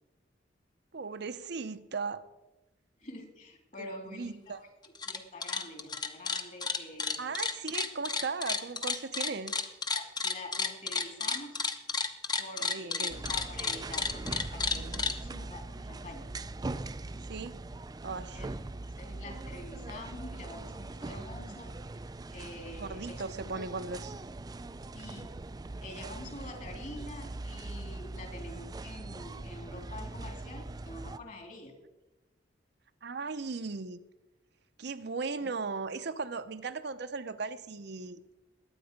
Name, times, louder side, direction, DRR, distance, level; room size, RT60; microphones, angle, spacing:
voice 1, 0.9-2.2 3.8-4.6 7.2-9.5 12.6-13.2 17.3-17.6 18.0-18.4 22.8-24.1 33.0-34.0 34.8-38.2, right 4 dB, 60° right, 10 dB, 0.7 m, -37 dB
voice 2, 3.0-7.2 9.9-11.6 12.4-16.3 18.3-18.5 19.0-21.7 22.3-23.2 23.5-23.6 24.9-25.4 25.8-31.7 35.4-35.5, left 1 dB, 45° left, 3 dB, 3.0 m, -46 dB
sound 1, 4.8-5.2 5.4-15.1, left 4 dB, 20° left, 0.8 m, -32 dB
sound 2, 13.1-31.2, right 2 dB, 20° right, 0.4 m, -41 dB
21.0 x 9.0 x 5.2 m, 1.0 s
head